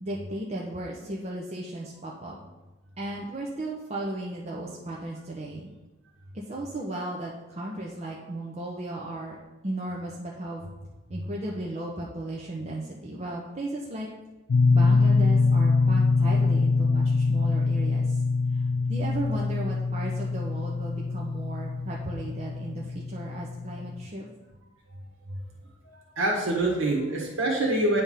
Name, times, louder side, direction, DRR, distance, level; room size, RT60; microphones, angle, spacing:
voice 1, 0.0-2.4 3.0-5.7 6.3-9.4 9.6-10.6 11.1-14.1 14.7-18.2 18.5-24.3, right 1 dB, 35° right, -3 dB, 0.7 m, -35 dB
sound 1, 14.5-24.1, left 4 dB, 65° left, 0.4 m, -24 dB
voice 2, 25.8-28.0, right 1 dB, 85° right, -2 dB, 1.6 m, -26 dB
8.9 x 3.5 x 5.6 m, 1.1 s
head